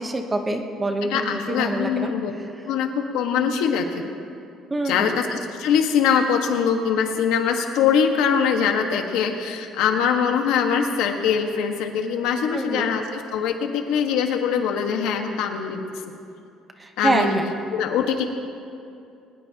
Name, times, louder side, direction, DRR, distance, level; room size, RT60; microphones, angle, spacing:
voice 1, 0.0-2.1 4.7-5.1 12.5-12.9 16.8-17.5, right 2 dB, 15° right, 4 dB, 1.0 m, -25 dB
voice 2, 1.0-2.3 2.7-4.1 4.8-15.8 17.0-17.4 17.7-18.2, left 7 dB, 85° left, 4 dB, 1.5 m, -22 dB
22.0 x 20.0 x 3.0 m, 2.5 s
cardioid pair, 170°, 0 cm